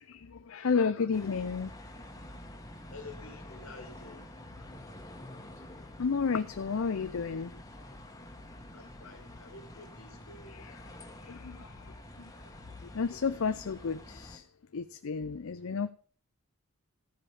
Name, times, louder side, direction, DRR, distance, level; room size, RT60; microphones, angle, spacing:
voice 1, 0.0-1.7 6.0-7.6 10.5-10.9 11.2-11.9 12.8-14.4 14.7-15.9, left 5 dB, 70° left, 11 dB, 0.5 m, -32 dB
sound 1, 1.1-14.4, left 1 dB, 15° left, 1.4 m, -48 dB
voice 2, 2.9-4.3 8.7-10.7, left 3 dB, 85° left, 5 dB, 2.6 m, -50 dB
14.0 x 5.2 x 7.0 m, 0.43 s
head